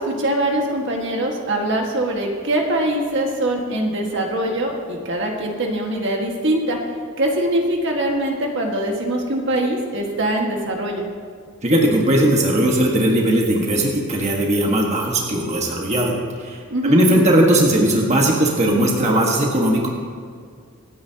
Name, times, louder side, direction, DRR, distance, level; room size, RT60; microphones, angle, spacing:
voice 1, 0.0-6.8 7.2-11.1 16.7-17.0, right 1 dB, 60° right, 1 dB, 1.7 m, -22 dB
voice 2, 11.6-19.9, right 1 dB, 30° right, -1 dB, 1.5 m, -18 dB
25.5 x 9.5 x 2.9 m, 2.1 s
head